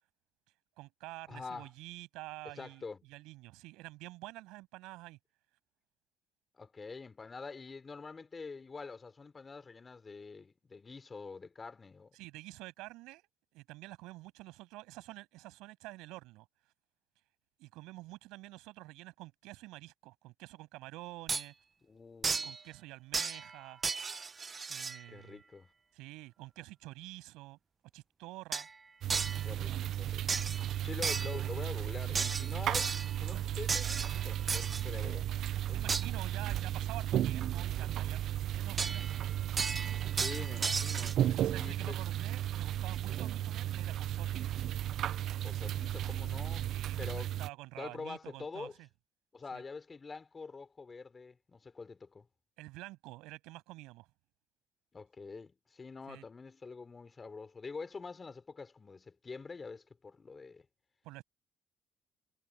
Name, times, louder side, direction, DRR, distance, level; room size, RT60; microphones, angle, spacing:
voice 1, 0.8-2.8 3.1-5.2 12.1-13.2 13.5-16.5 17.6-21.5 22.4-23.8 24.7-25.4 25.9-27.6 27.9-28.7 30.7-30.9 35.7-39.1 40.4-40.7 41.2-44.4 46.6-48.9 49.5-49.6 52.6-54.1 56.1-56.3 61.0-61.2, right 20 dB, 85° right, 7.9 m, -48 dB
voice 2, 1.3-1.7 2.6-3.0 6.5-12.2 21.9-22.5 25.1-25.7 29.4-30.4 30.8-35.3 35.7-36.2 40.1-41.2 41.6-42.0 45.4-46.7 47.0-47.3 47.8-48.7 49.3-52.3 54.9-60.7, left 4 dB, 30° left, 3.8 m, -46 dB
sound 1, 21.3-21.4 22.2-22.6 23.1-23.6 23.8-25.0 28.5-28.7 29.1-29.5 30.3-30.7 31.0-31.5 32.2-33.2 33.7-34.8 35.9-36.1 38.8-39.2 39.6-41.1, right 4 dB, 35° right, 0.9 m, -34 dB
sound 2, 29.0-47.5, right 12 dB, 65° right, 0.6 m, -34 dB
supercardioid pair, 75°, 0 cm